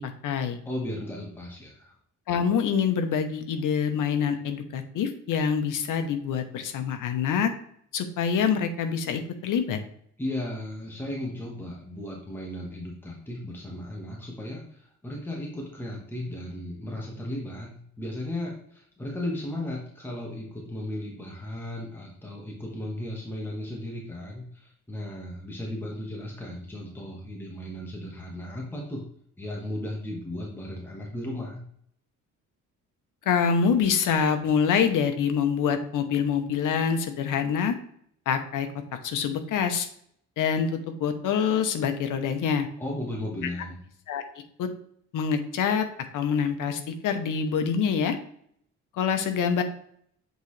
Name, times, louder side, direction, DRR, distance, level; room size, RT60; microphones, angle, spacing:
voice 1, 0.0-0.6 2.3-7.5 7.9-9.8 33.3-37.7 38.3-38.7 39.0-39.9 40.4-42.7 44.1-44.2 44.6-44.7 45.1-45.8 46.1-48.2 48.9-49.6, left 7 dB, 80° left, 8 dB, 1.0 m, -25 dB
voice 2, 0.6-1.9 10.2-29.0 29.4-31.6 42.8-43.8, left 1 dB, 5° left, -3 dB, 1.5 m, -35 dB
8.0 x 4.0 x 3.2 m, 0.65 s
cardioid pair, 115°, 31 cm